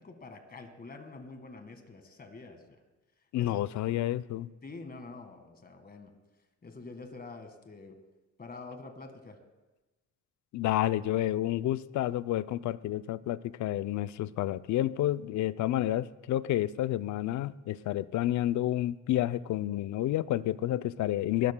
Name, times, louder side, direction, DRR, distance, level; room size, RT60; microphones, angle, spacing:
voice 1, 0.0-2.8 3.4-3.6 3.9-4.0 4.6-6.1 6.6-8.0 8.4-9.4, left 3 dB, 30° left, 6 dB, 1.7 m, -46 dB
voice 2, 3.3-4.5 10.5-21.5, left 13 dB, 70° left, 16 dB, 0.5 m, -30 dB
20.0 x 12.5 x 2.2 m, 1.1 s
cardioid pair, 90°, 30 cm